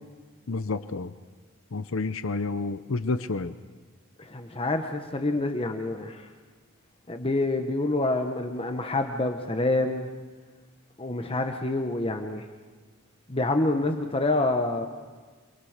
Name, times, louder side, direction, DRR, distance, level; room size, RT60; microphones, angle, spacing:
voice 1, 0.5-1.1 1.7-3.5, left 3 dB, 65° left, 11 dB, 0.7 m, -29 dB
voice 2, 4.2-6.3 7.1-10.1 11.0-12.5 13.3-14.9, left 2 dB, 25° left, 5 dB, 1.1 m, -27 dB
28.0 x 22.5 x 6.6 m, 1.4 s
head